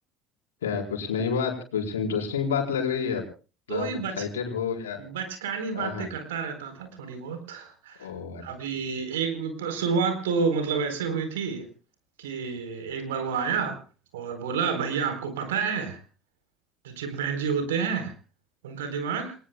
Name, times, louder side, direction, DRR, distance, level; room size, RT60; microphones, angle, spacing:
voice 1, 0.6-3.2 3.7-5.0 5.7-6.1 8.0-8.4, left 6 dB, 75° left, 1 dB, 4.4 m, -29 dB
voice 2, 3.7-4.1 5.0-8.1 8.4-11.7 12.2-13.8 14.1-16.0 16.8-18.1 18.6-19.4, right 6 dB, 70° right, 7 dB, 4.2 m, -29 dB
29.0 x 19.5 x 2.4 m, 0.37 s
figure-of-eight pair, 65°, 0 cm